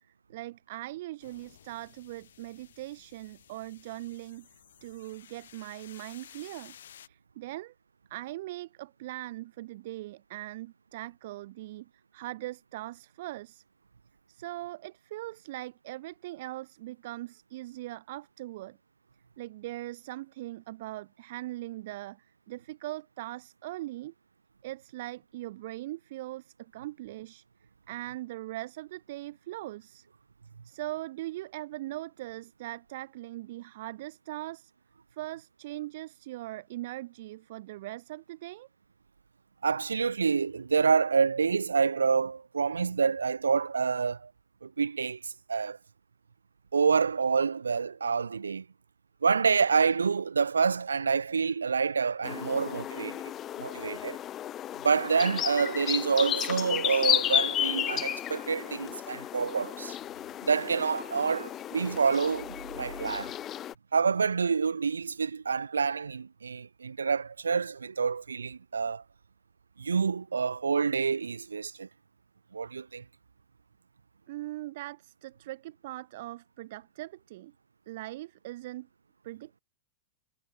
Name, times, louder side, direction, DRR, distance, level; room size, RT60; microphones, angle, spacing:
voice 1, 0.0-4.5 4.8-6.8 7.1-7.7 8.1-13.6 14.3-18.8 19.4-24.1 24.6-27.4 27.9-30.1 30.6-34.7 35.1-38.7 74.3-77.5 77.9-78.9 79.2-79.6, right 17 dB, 60° right, 2.1 m, -40 dB
sound 1, 1.2-7.1, left 9 dB, 75° left, 7.6 m, -55 dB
voice 2, 39.6-44.3 44.6-45.2 45.5-45.8 46.7-48.6 49.2-53.2 53.6-54.2 54.8-60.0 60.4-63.3 63.9-69.0 69.8-71.9 72.5-73.0, right 5 dB, 90° right, 1.3 m, -27 dB
sound 2, 52.2-63.7, left 11 dB, 35° left, 0.5 m, -33 dB
hypercardioid pair, 105°, 0 cm